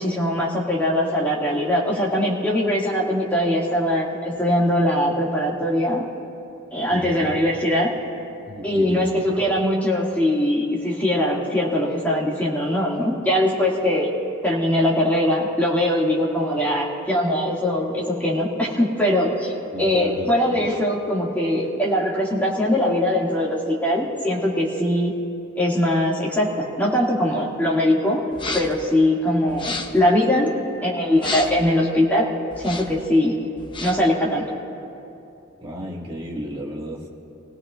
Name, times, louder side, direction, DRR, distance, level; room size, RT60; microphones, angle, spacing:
voice 1, 0.0-6.1 6.7-7.9 8.6-14.2 14.4-25.1 25.6-28.2 28.5-30.5 30.8-32.3 32.6-33.3 33.8-34.5, left 1 dB, 10° left, -4 dB, 2.2 m, -21 dB
voice 2, 6.9-7.4 8.5-9.4 19.7-20.8 21.6-21.7 35.6-37.1, equal, 25° right, -4 dB, 2.0 m, -33 dB
sound 1, 28.3-28.8 29.5-30.1 31.1-31.7 32.5-33.0 33.6-34.1, left 3 dB, 25° left, 0.7 m, -31 dB
28.0 x 17.5 x 2.5 m, 2.7 s
head